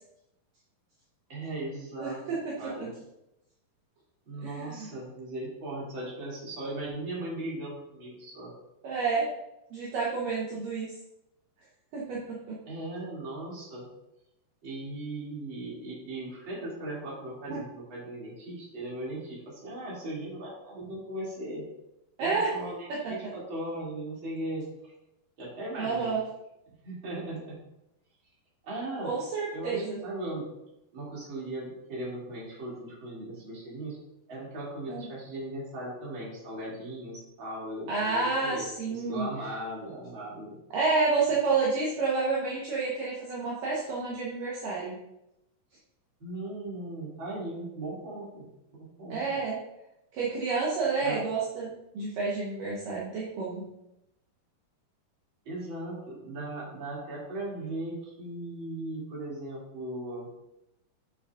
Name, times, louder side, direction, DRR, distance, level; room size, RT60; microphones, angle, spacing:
voice 1, 1.3-2.2 2.6-2.9 4.3-8.5 12.6-13.9 14.6-21.6 22.2-24.9 25.4-26.1 26.8-27.6 28.6-29.1 29.5-30.5 30.9-34.0 34.3-40.6 46.2-48.5 48.7-49.2 51.0-51.2 55.4-60.3, right 1 dB, 35° right, -6 dB, 2.9 m, -38 dB
voice 2, 2.0-2.4 4.4-4.9 8.8-9.3 9.7-10.9 11.9-12.2 12.5-12.6 17.5-17.6 22.2-22.5 23.0-23.1 25.8-26.2 29.0-30.0 34.9-35.1 37.9-39.3 40.7-45.0 49.1-49.6 50.1-53.6, right 4 dB, 65° right, -5 dB, 2.5 m, -29 dB
8.9 x 7.2 x 2.5 m, 0.86 s
omnidirectional pair, 4.6 m